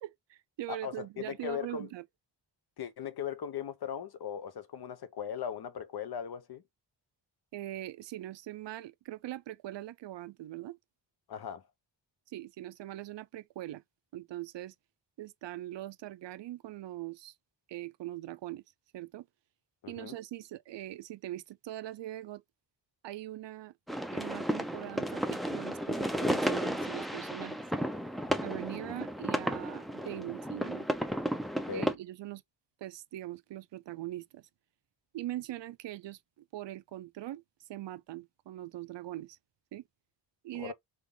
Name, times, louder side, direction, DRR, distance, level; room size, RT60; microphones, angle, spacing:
voice 1, 0.0-2.0 7.5-10.8 12.3-13.8 14.1-14.7 15.2-17.3 17.7-18.6 18.9-19.3 19.9-22.4 23.0-23.7 24.1-27.6 28.4-30.9 31.7-32.4 32.8-34.5 35.1-37.4 37.7-39.4 39.7-39.8 40.4-40.7, right 14 dB, 75° right, 0.5 m, -42 dB
voice 2, 0.7-1.9 2.8-6.6 11.3-11.7 19.8-20.2 31.6-31.9 40.5-40.7, left 8 dB, 60° left, 0.8 m, -38 dB
sound 1, 23.9-31.9, equal, ahead, 0.4 m, -33 dB
3.7 x 3.6 x 3.7 m
wide cardioid pair, 155°, 44 cm